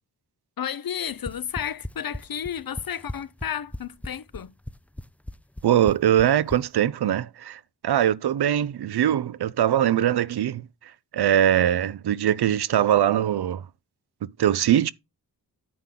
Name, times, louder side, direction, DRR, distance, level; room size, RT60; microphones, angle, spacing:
voice 1, 0.6-4.5, left 9 dB, 60° left, 0.7 m, -32 dB
sound 1, 1.1-6.6, left 1 dB, 5° left, 0.3 m, -35 dB
voice 2, 5.6-10.6 11.1-13.6 14.4-14.9, right 11 dB, 75° right, 0.5 m, -22 dB
9.4 x 3.7 x 5.9 m
wide cardioid pair, 85°, 39 cm